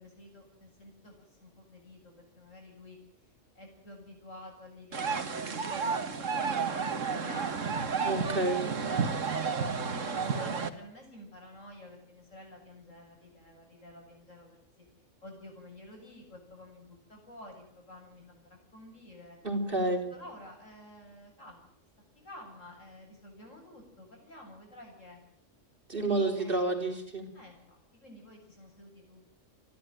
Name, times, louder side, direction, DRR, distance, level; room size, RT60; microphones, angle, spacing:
voice 1, 0.0-3.0 3.5-7.9 9.1-9.4 9.8-14.9 15.2-19.4 20.1-21.7 22.1-25.2 25.9-26.9 27.3-29.2, left 1 dB, 80° left, 1 dB, 8.0 m, -51 dB
sound 1, 4.9-10.7, right 5 dB, 80° right, 2.0 m, -31 dB
voice 2, 8.0-8.7 19.4-20.1 25.9-27.3, right 2 dB, 45° right, 3 dB, 4.5 m, -29 dB
28.0 x 12.0 x 9.1 m, 0.71 s
omnidirectional pair, 1.3 m